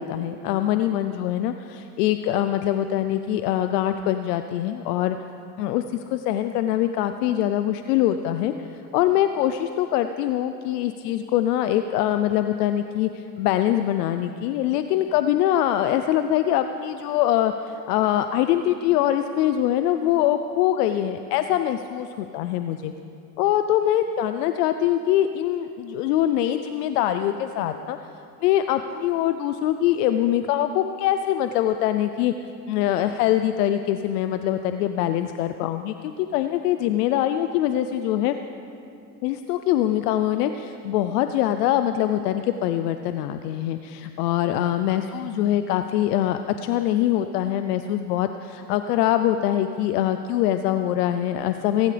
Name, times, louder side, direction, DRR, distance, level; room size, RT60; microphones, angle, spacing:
voice 1, 0.0-5.2 5.6-5.8 6.1-8.7 8.9-22.9 23.4-28.0 28.4-32.3 32.7-38.3 39.2-51.9, left 12 dB, 80° left, 9 dB, 0.7 m, -23 dB
23.5 x 12.5 x 3.4 m, 2.6 s
hypercardioid pair, 85°, 46 cm